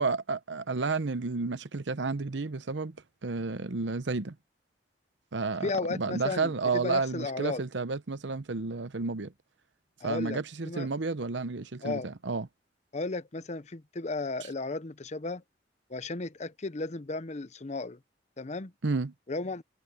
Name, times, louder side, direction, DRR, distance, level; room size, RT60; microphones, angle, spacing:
voice 1, 0.0-3.0 3.2-4.4 5.3-9.3 10.0-12.5 18.8-19.1, right 4 dB, 80° right, 0.9 m, -31 dB
voice 2, 5.6-7.6 10.0-10.4 10.7-10.9 11.8-12.1 12.9-15.4 15.9-18.0 18.4-18.7 19.3-19.6, left 3 dB, 40° left, 0.7 m, -34 dB
head